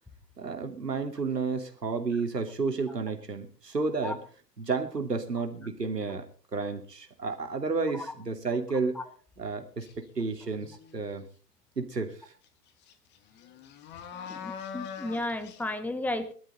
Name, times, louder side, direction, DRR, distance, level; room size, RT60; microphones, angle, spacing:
voice 1, 0.4-4.2 4.6-6.3 6.5-9.0 9.4-11.2 11.8-12.2, right 4 dB, 80° right, 5 dB, 3.0 m, -31 dB
sound 1, 9.8-10.0 10.5-11.1 12.4-12.5 12.8-15.6, left 7 dB, 20° left, 1.6 m, -43 dB
voice 2, 14.3-16.3, left 2 dB, 5° left, 11 dB, 1.0 m, -33 dB
19.5 x 12.5 x 4.3 m, 0.39 s
figure-of-eight pair, 115°, 48 cm